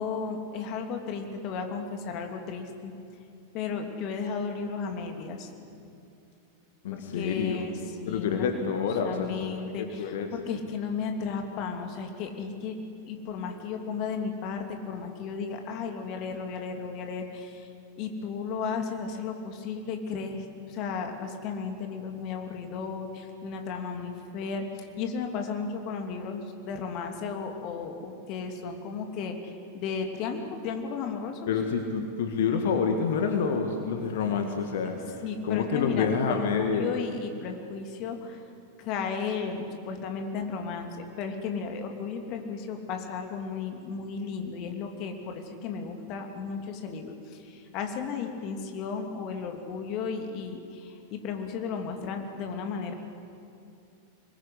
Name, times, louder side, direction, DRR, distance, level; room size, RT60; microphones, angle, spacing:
voice 1, 0.0-2.9 3.5-5.8 6.9-12.8 13.1-17.7 18.0-31.5 35.2-38.4 38.8-52.9, left 5 dB, 40° left, 4 dB, 2.9 m, -34 dB
voice 2, 6.8-7.7 8.1-10.3 31.5-36.9, left 6 dB, 55° left, 5 dB, 1.9 m, -28 dB
24.5 x 21.0 x 10.0 m, 2.6 s
figure-of-eight pair, 90°, 0 cm